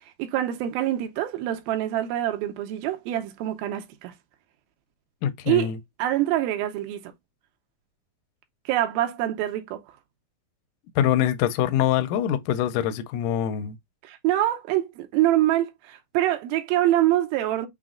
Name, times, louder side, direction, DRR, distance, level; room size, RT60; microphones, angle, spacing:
voice 1, 0.2-4.1 5.5-5.7 6.0-7.0 8.7-9.8 14.0-17.7, right 13 dB, 80° right, 2.5 m, -25 dB
voice 2, 5.2-5.8 11.0-13.8, left 10 dB, 85° left, 1.8 m, -24 dB
5.9 x 2.0 x 3.6 m
omnidirectional pair, 4.2 m